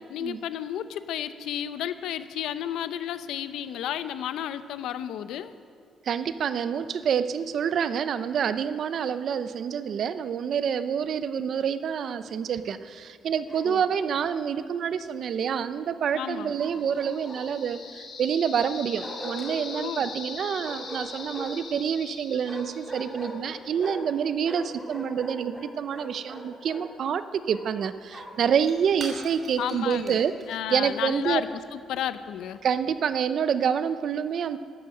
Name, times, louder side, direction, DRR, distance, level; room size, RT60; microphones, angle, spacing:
voice 1, 0.1-5.5 13.6-13.8 16.1-16.5 19.8-20.0 29.6-30.2 30.5-31.5 31.9-32.6, left 10 dB, 80° left, 12 dB, 0.6 m, -32 dB
voice 2, 6.0-31.4 32.6-34.6, right 7 dB, 55° right, 12 dB, 0.6 m, -27 dB
Bark, 13.5-14.1 16.6-17.7 19.0-19.9 20.6-21.7 22.4-24.2 24.4-26.9 27.5-28.5, equal, ahead, 2.0 m, -40 dB
sound 1, 16.5-23.4, left 4 dB, 50° left, 2.3 m, -42 dB
Shatter / Crushing, 28.0-32.8, right 2 dB, 30° right, 3.4 m, -47 dB
13.0 x 10.5 x 7.6 m, 2.3 s
cardioid pair, 140°, 0 cm